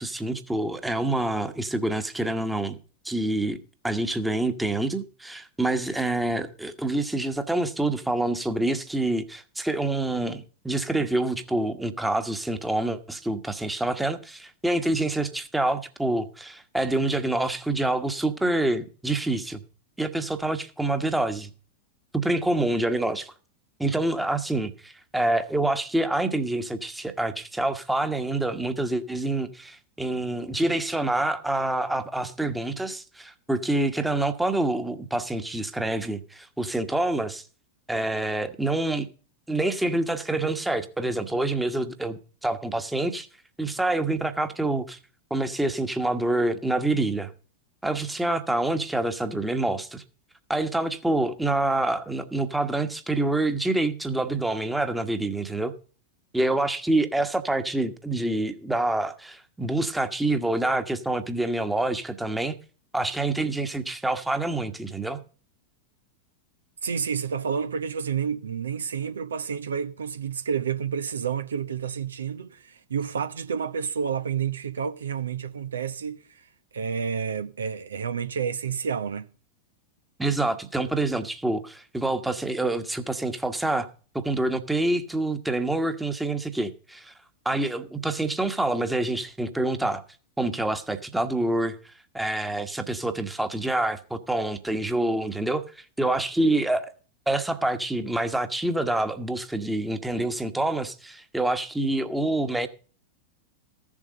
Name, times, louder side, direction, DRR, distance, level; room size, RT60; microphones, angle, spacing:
voice 1, 0.0-2.8 3.0-3.6 3.8-19.6 20.0-21.5 22.1-23.3 23.8-37.4 37.9-39.1 39.5-43.3 43.6-45.0 45.3-47.3 47.8-50.0 50.5-55.7 56.3-62.6 62.9-65.2 80.2-83.9 84.1-87.1 87.4-90.0 90.4-96.9 97.3-102.7, right 2 dB, 5° right, 1.3 m, -27 dB
voice 2, 66.8-76.5 76.7-79.3, right 7 dB, 70° right, 0.7 m, -30 dB
15.0 x 7.4 x 5.3 m
figure-of-eight pair, 90°, 0 cm